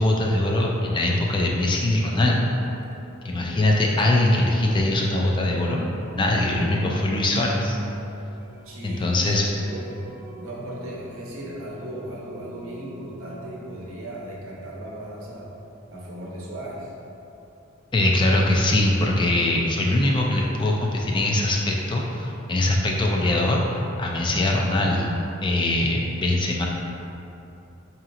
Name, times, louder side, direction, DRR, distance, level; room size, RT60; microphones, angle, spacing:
voice 1, 0.0-2.5 3.2-5.9 6.2-7.8 8.8-9.5 17.9-25.1 25.4-26.7, left 1 dB, 25° left, -1 dB, 0.3 m, -22 dB
sound 1, 2.8-14.7, right 1 dB, 50° right, 0.5 m, -39 dB
voice 2, 8.6-10.0 10.4-15.5 15.9-16.9, right 1 dB, 80° right, -5 dB, 0.8 m, -37 dB
4.8 x 2.8 x 2.5 m, 2.8 s
head